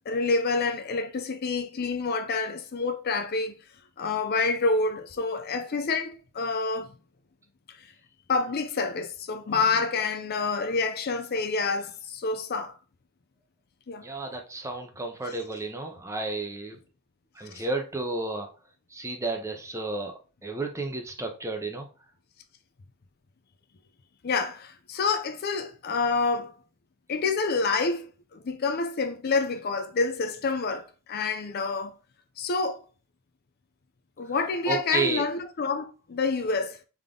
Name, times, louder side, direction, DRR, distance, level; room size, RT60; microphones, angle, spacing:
voice 1, 0.1-3.6 4.0-6.9 8.3-12.8 13.9-14.1 17.5-17.6 24.2-26.5 27.1-28.1 28.3-30.8 31.1-32.0 32.4-32.8 34.2-36.8, left 4 dB, 45° left, 0.4 m, -28 dB
voice 2, 14.0-16.8 17.4-18.5 18.9-20.1 20.4-21.9 34.7-35.2, right 3 dB, 15° right, 0.7 m, -32 dB
3.6 x 3.5 x 3.7 m
head